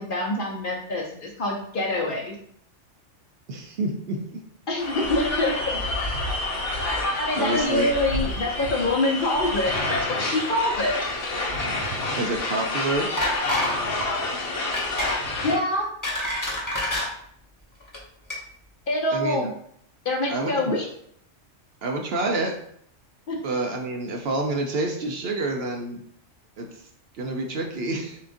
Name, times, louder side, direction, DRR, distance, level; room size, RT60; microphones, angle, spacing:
voice 1, 0.0-2.4 4.7-5.8 7.2-11.0 15.4-15.9 18.9-19.5 20.0-20.9 23.3-23.4, left 2 dB, 50° left, -1 dB, 0.8 m, -25 dB
voice 2, 3.5-4.4 7.4-7.9 12.2-13.1 19.1-19.5 20.3-20.7 21.8-22.5 23.4-26.0 26.6-26.7 27.2-28.2, right 2 dB, 60° right, 1 dB, 0.8 m, -28 dB
sound 1, 4.8-15.6, left 2 dB, 70° left, 1.2 m, -28 dB
sound 2, 13.2-13.7 14.0-14.2 14.7-15.2 15.7-17.1 17.8-18.0 18.3-18.4, left 1 dB, 15° left, 1.1 m, -27 dB
7.0 x 2.4 x 2.6 m, 0.68 s
omnidirectional pair, 1.3 m